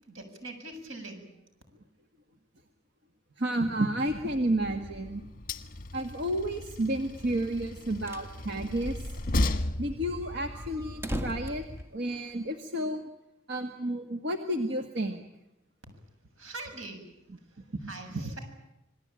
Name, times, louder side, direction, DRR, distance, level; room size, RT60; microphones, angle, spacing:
voice 1, 0.0-1.3 16.4-17.0 17.5-18.4, right 2 dB, 80° right, 6 dB, 7.4 m, -43 dB
voice 2, 3.4-5.2 5.9-9.0 9.8-11.6 11.9-13.1 13.5-15.2, right 1 dB, 60° right, 6 dB, 1.8 m, -31 dB
Train, 4.1-11.8, left 1 dB, 45° left, 1.5 m, -35 dB
sound 1, 7.9-8.3 8.7-8.8 9.0-9.1 9.5-12.6, equal, 10° right, 1.8 m, -39 dB
27.5 x 21.0 x 9.0 m, 0.90 s
head